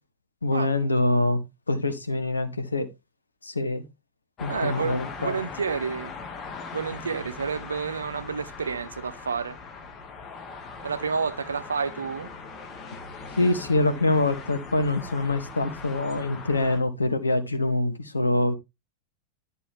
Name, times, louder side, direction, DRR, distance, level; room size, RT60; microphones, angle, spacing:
voice 1, 0.4-2.9 3.4-3.8 4.4-5.4 13.4-18.5, left 2 dB, 80° left, 1.3 m, -25 dB
sound 1, 4.4-16.8, left 4 dB, 30° left, 2.3 m, -40 dB
voice 2, 4.5-6.1 6.7-9.6 10.8-12.3, right 5 dB, 70° right, 0.7 m, -30 dB
11.0 x 6.6 x 3.6 m
figure-of-eight pair, 90°, 0 cm